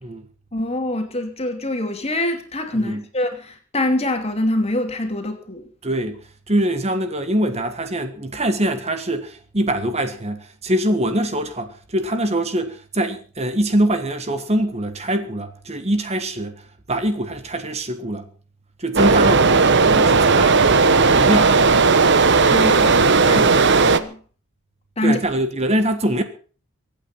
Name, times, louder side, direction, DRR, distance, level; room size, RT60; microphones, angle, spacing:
voice 1, 0.5-5.7 22.5-24.2 25.0-25.2, left 1 dB, 30° left, 2.7 m, -25 dB
voice 2, 5.8-18.3 18.8-21.6 25.0-26.2, right 1 dB, 30° right, 1.5 m, -23 dB
sound 1, 19.0-24.0, right 4 dB, 55° right, 1.1 m, -15 dB
24.0 x 9.0 x 5.7 m
head